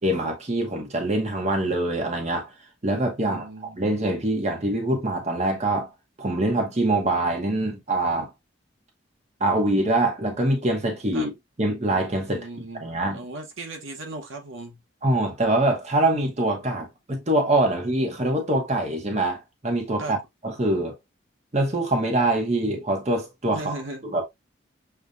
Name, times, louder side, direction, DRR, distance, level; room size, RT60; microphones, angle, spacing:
voice 1, 0.0-2.5 2.8-5.9 6.2-8.3 9.4-11.3 11.6-12.5 12.8-13.2 15.0-20.2 20.4-20.9 21.5-23.7 24.1-24.2, right 1 dB, 35° right, 0.9 m, -24 dB
voice 2, 3.2-3.8 11.1-11.3 12.3-14.8 20.0-20.2 23.5-24.1, right 2 dB, 85° right, 1.1 m, -37 dB
6.8 x 2.3 x 2.5 m
head